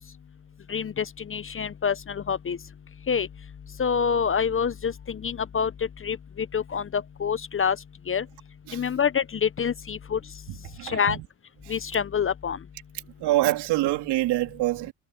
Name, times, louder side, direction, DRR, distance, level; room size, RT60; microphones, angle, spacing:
voice 1, 0.7-2.6 3.1-3.3 3.8-5.7 6.0-7.8 8.1-8.2 8.7-10.2 10.8-11.2 11.7-12.6, left 7 dB, 30° left, 1.0 m, -26 dB
voice 2, 10.5-11.3 11.6-11.8 13.2-14.9, right 16 dB, 70° right, 3.5 m, -26 dB
hypercardioid pair, 70°, 42 cm